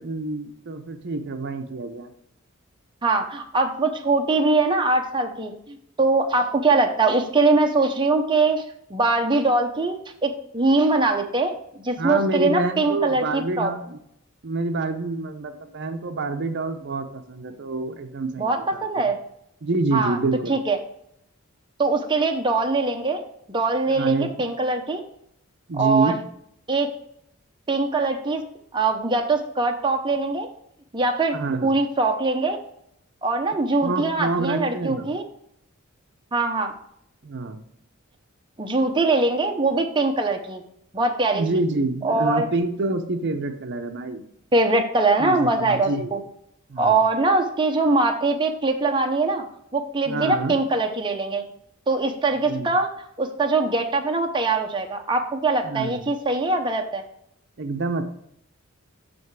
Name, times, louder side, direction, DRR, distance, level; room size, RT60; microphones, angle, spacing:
voice 1, 0.0-2.1 12.0-14.0 14.4-19.1 19.6-20.6 24.0-24.4 25.7-26.2 31.3-31.7 33.8-35.1 37.2-37.6 41.3-44.2 45.2-46.2 46.7-47.1 50.1-50.6 52.5-52.7 55.6-56.1 57.6-58.0, right 2 dB, 55° right, 7 dB, 0.6 m, -27 dB
voice 2, 3.0-8.6 8.9-11.5 11.8-13.7 18.4-19.2 19.9-20.2 20.5-20.8 21.8-23.2 23.5-25.0 25.7-26.2 26.7-26.9 27.7-28.4 28.7-30.5 30.9-31.4 31.6-32.6 33.2-35.2 36.3-36.7 38.6-40.6 40.9-41.4 42.0-42.5 44.5-46.2 46.8-49.4 49.7-51.4 51.9-52.9 53.2-57.0, right 3 dB, 20° right, 3 dB, 0.7 m, -22 dB
6.0 x 5.1 x 4.6 m, 0.73 s
head